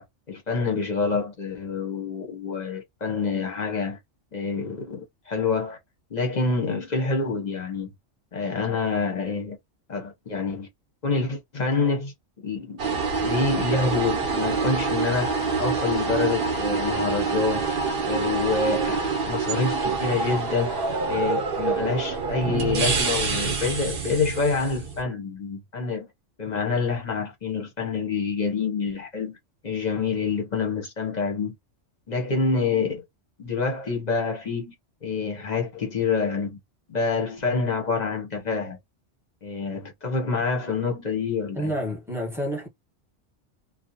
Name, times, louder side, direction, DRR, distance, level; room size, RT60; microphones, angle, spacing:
voice 1, 0.0-4.0 4.3-5.8 6.1-7.9 8.3-9.6 9.9-10.7 11.0-17.7 18.0-20.8 21.1-26.1 26.4-29.4 29.6-31.5 32.1-33.0 33.4-34.7 35.0-36.6 36.9-38.8 39.4-41.7, left 4 dB, 45° left, 0.7 m, -27 dB
sound 1, 12.8-25.0, right 4 dB, 55° right, 0.9 m, -26 dB
voice 2, 41.5-42.7, equal, ahead, 1.0 m, -29 dB
2.8 x 2.1 x 2.5 m
omnidirectional pair, 1.2 m